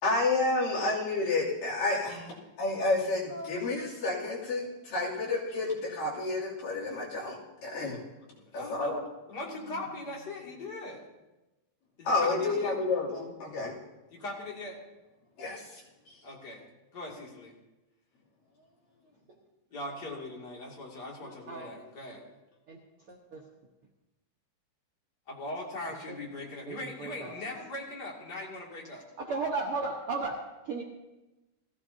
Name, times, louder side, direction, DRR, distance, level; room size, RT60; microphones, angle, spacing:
voice 1, 0.0-7.4 7.6-8.0 8.5-9.0 12.0-13.8 15.4-16.2, left 2 dB, 70° left, -6 dB, 4.6 m, -30 dB
voice 2, 8.5-8.9 9.3-11.0 12.0-12.8 14.1-14.8 16.2-16.6 16.9-17.5 19.7-22.4 25.3-29.1, left 2 dB, 30° left, -3 dB, 2.7 m, -40 dB
voice 3, 21.2-21.7 22.7-22.8 23.1-23.4 26.1-26.2 26.7-27.4 29.2-30.8, right 3 dB, 60° right, -1 dB, 1.4 m, -35 dB
20.0 x 15.0 x 2.8 m, 1.0 s
omnidirectional pair, 4.0 m